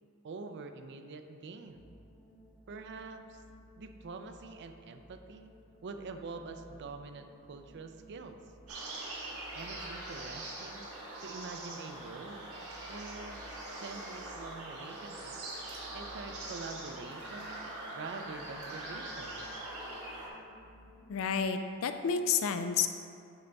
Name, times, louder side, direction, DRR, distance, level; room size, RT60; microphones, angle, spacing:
voice 1, 0.2-1.9 2.7-3.4 3.8-5.5 5.8-8.4 9.5-10.9 11.2-12.5 12.9-13.4 13.7-15.4 15.9-17.6 17.9-19.5, right 4 dB, 55° right, 6 dB, 0.4 m, -45 dB
sound 1, 1.6-21.4, equal, 5° left, 1.1 m, -58 dB
sound 2, 8.7-20.3, right 2 dB, 70° right, 1.5 m, -43 dB
voice 2, 21.1-22.9, left 6 dB, 65° left, 8 dB, 0.4 m, -30 dB
10.5 x 4.0 x 3.4 m, 2.4 s
head